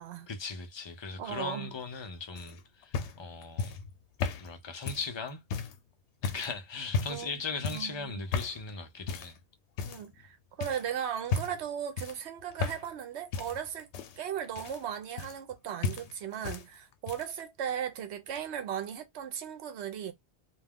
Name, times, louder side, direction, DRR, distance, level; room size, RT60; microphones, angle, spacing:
voice 1, 0.3-3.8 4.4-5.4 6.2-9.4, left 4 dB, 45° left, 0.4 m, -38 dB
voice 2, 1.2-1.7 7.1-8.2 9.8-13.9 14.2-20.1, right 9 dB, 80° right, 0.9 m, -37 dB
sound 1, 2.4-5.8 6.2-6.5 6.9-7.3 7.6-7.9 8.3-8.6 9.1-9.4 9.8-10.3 10.6-10.8 11.3-11.7 12.0-13.0 13.3-15.6 15.8-16.7 16.9-17.4 18.4-18.5, left 5 dB, 80° left, 0.9 m, -35 dB
2.3 x 2.2 x 3.5 m
omnidirectional pair, 1.1 m